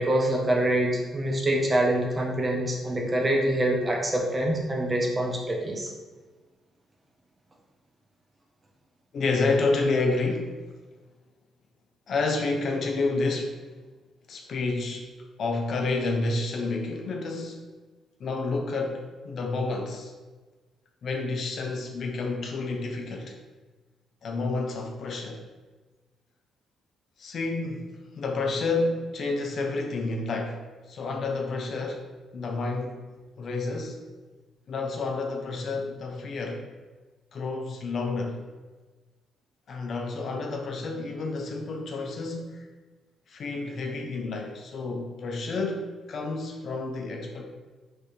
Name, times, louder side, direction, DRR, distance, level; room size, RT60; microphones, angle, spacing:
voice 1, 0.0-5.9, right 1 dB, 25° right, 0 dB, 0.9 m, -25 dB
voice 2, 9.1-10.6 12.1-13.6 14.3-15.1 15.4-17.6 18.2-20.1 21.0-23.4 24.2-25.4 27.2-27.9 28.2-33.1 33.4-34.0 34.7-36.7 37.3-38.4 39.7-42.6 43.3-47.4, left 3 dB, 60° left, 2 dB, 0.6 m, -29 dB
3.3 x 3.3 x 4.2 m, 1.3 s
cardioid pair, 90°, 0 cm